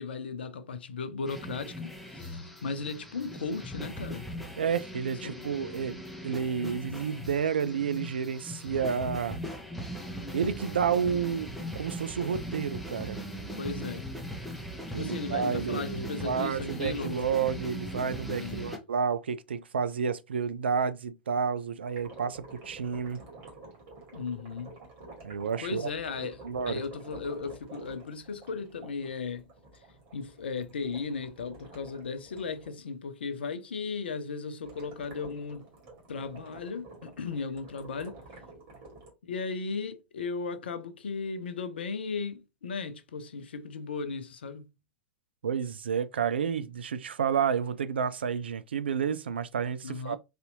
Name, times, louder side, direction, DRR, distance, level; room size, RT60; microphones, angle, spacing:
voice 1, 0.0-4.3 5.2-5.5 13.6-14.1 14.9-17.3 18.3-18.8 24.1-24.8 25.6-29.5 29.7-29.8 30.1-35.7 36.1-38.2 39.2-44.7 49.8-50.2, left 4 dB, 70° left, 0.5 m, -36 dB
sound 1, 1.3-18.8, equal, ahead, 0.8 m, -39 dB
voice 2, 4.6-9.4 10.3-11.5 11.8-13.2 14.9-23.2 25.2-25.9 26.4-26.8 45.4-50.2, right 7 dB, 70° right, 0.3 m, -30 dB
sound 2, 21.9-32.7 34.6-39.1, right 3 dB, 50° right, 1.9 m, -50 dB
4.1 x 2.7 x 2.6 m
figure-of-eight pair, 90°, 6 cm